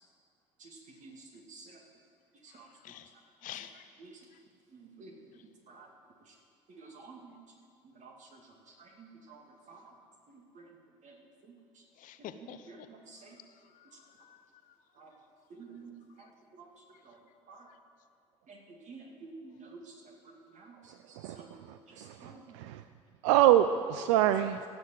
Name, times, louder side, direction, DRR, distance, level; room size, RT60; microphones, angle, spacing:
voice 1, 0.6-1.8 2.4-2.9 4.0-4.3 4.7-5.1 5.7-5.9 6.3-6.4 6.7-7.3 7.8-10.0 10.3-10.7 11.0-11.8 12.2-13.4 13.9-14.0 14.9-15.1 15.5-17.7 18.5-21.5 21.9-22.4 24.0-24.2, right 4 dB, 50° right, 1 dB, 2.4 m, -52 dB
voice 2, 2.5-3.1 3.4-3.9 12.0-12.9 13.5-14.7 16.2-16.3, left 11 dB, 55° left, 11 dB, 0.7 m, -49 dB
voice 3, 21.2-22.8 23.2-24.6, right 12 dB, 70° right, 11 dB, 0.4 m, -26 dB
16.0 x 6.9 x 7.7 m, 2.3 s
figure-of-eight pair, 55°, 16 cm